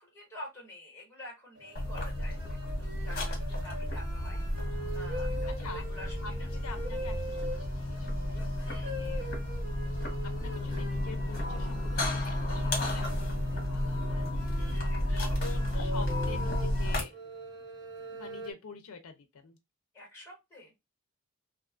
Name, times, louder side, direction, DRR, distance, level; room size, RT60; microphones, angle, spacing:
voice 1, 0.0-4.4 4.9-6.5 8.6-9.4 14.5-15.7 19.9-20.7, left 1 dB, 10° left, 1.1 m, -48 dB
sound 1, 1.6-18.5, equal, 55° right, 0.8 m, -43 dB
sound 2, 1.8-17.0, left 1 dB, 45° left, 1.0 m, -32 dB
voice 2, 6.2-8.4 8.8-9.3 10.2-14.7 15.0-17.1 18.1-19.6, left 4 dB, 75° left, 0.4 m, -47 dB
2.5 x 2.3 x 2.3 m
head